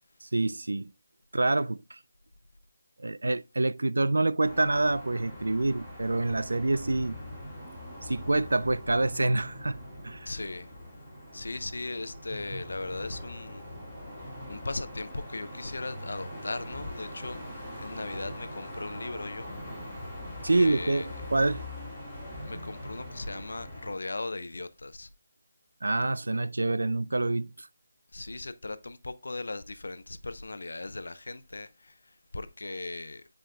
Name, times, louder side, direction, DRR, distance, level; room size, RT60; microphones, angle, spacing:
voice 1, 0.2-0.9 1.3-2.0 3.0-7.2 8.0-10.3 20.4-21.7 25.8-27.7, right 2 dB, 85° right, 0.4 m, -27 dB
sound 1, 4.4-23.9, left 1 dB, 5° left, 2.7 m, -42 dB
voice 2, 10.3-10.7 11.3-13.7 14.5-19.5 20.5-21.1 22.5-25.1 28.1-33.2, left 2 dB, 80° left, 0.7 m, -38 dB
9.8 x 5.0 x 2.2 m
figure-of-eight pair, 165°, 0 cm